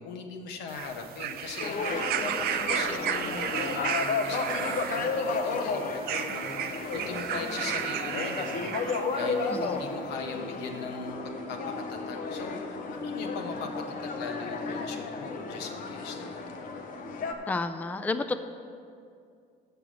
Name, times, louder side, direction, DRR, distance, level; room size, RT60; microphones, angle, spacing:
voice 1, 0.0-11.2 11.5-11.6 11.9-13.7 14.0-16.5, left 4 dB, 85° left, 4 dB, 1.1 m, -40 dB
sound 1, 0.7-9.4 10.3-10.4, right 9 dB, 65° right, 0.5 m, -34 dB
sound 2, 1.6-17.3, left 4 dB, 55° left, 0.9 m, -33 dB
voice 2, 17.5-18.4, left 3 dB, 10° left, 9 dB, 0.4 m, -31 dB
6.8 x 6.7 x 7.6 m, 2.3 s
cardioid pair, 110°, 17 cm